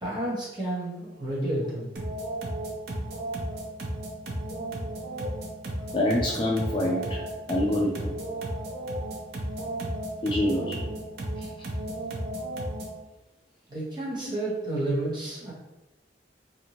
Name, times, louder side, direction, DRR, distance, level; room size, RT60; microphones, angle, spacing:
voice 1, 0.0-1.9 13.7-15.5, right 1 dB, 25° right, -8 dB, 1.1 m, -31 dB
sound 1, 2.0-13.0, right 1 dB, 60° right, 0.5 m, -34 dB
voice 2, 5.9-7.2 7.5-8.2 10.2-10.9 11.4-11.5 14.2-14.3, left 1 dB, 25° left, -2 dB, 0.3 m, -26 dB
2.6 x 2.5 x 2.9 m, 1.0 s
head